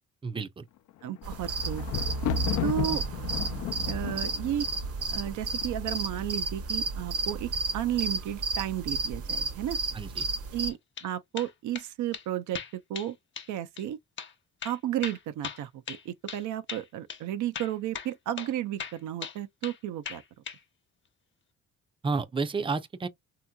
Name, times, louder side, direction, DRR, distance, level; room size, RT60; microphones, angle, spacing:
voice 1, 0.2-0.7 2.9-3.0 9.9-10.3 22.0-23.1, right 4 dB, 15° right, 0.5 m, -31 dB
Thunder, 0.9-6.0 6.8-7.3 7.5-7.6, left 14 dB, 75° left, 0.5 m, -35 dB
voice 2, 1.0-1.9 2.6-3.0 3.9-4.7 5.1-9.8 10.5-13.2 13.5-14.0 14.6-20.2, right 11 dB, 75° right, 0.6 m, -33 dB
sound 1, 1.2-10.7, right 3 dB, 55° right, 0.9 m, -32 dB
sound 2, 10.7-11.1 11.4-11.9 12.1-12.3 12.5-13.1 13.4-13.5 13.8-13.9 14.2-14.3 14.6-16.4 16.7-16.8 17.1-17.2 17.5-18.1 18.4-18.5 18.8-19.8 20.1-20.6, left 7 dB, 40° left, 0.8 m, -39 dB
3.5 x 2.8 x 2.2 m
cardioid pair, 90°, 30 cm